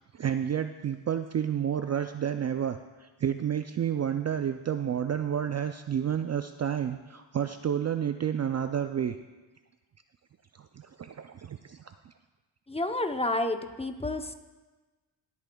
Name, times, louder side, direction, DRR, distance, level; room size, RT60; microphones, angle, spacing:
voice 1, 0.1-9.2 10.6-12.1, right 9 dB, 35° right, 8 dB, 0.4 m, -30 dB
voice 2, 12.7-14.3, left 2 dB, 15° left, 7 dB, 0.7 m, -30 dB
21.0 x 8.3 x 2.3 m, 1.2 s
cardioid pair, 80°, 46 cm